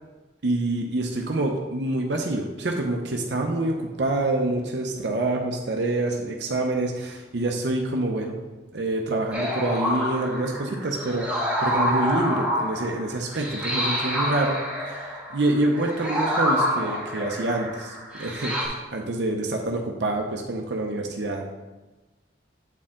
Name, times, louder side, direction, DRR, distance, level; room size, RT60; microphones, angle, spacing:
voice 1, 0.4-8.4 8.7-11.3 11.6-21.4, right 2 dB, 80° right, 1 dB, 0.7 m, -26 dB
sound 1, 9.3-18.7, equal, 5° right, 1.4 m, -27 dB
8.1 x 4.3 x 3.7 m, 1.2 s
head